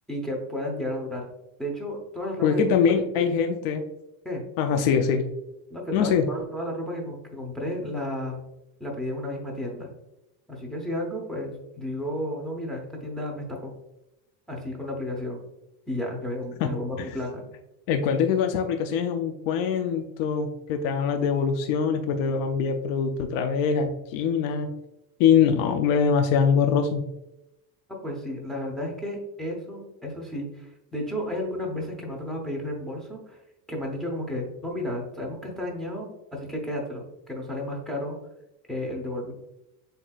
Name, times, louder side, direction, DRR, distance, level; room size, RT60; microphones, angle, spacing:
voice 1, 0.1-1.2 1.6-3.0 4.2-4.4 5.7-8.4 8.8-9.9 10.5-13.7 14.5-15.4 15.9-17.4 28.0-33.4 33.7-38.2 38.7-39.3, left 1 dB, ahead, -1 dB, 0.8 m, -32 dB
voice 2, 2.4-3.8 4.6-5.3 5.9-6.3 16.6-16.7 17.0-17.1 17.9-24.7 25.2-27.1, left 6 dB, 65° left, 6 dB, 0.6 m, -23 dB
7.5 x 2.8 x 2.4 m, 0.91 s
cardioid pair, 135°, 48 cm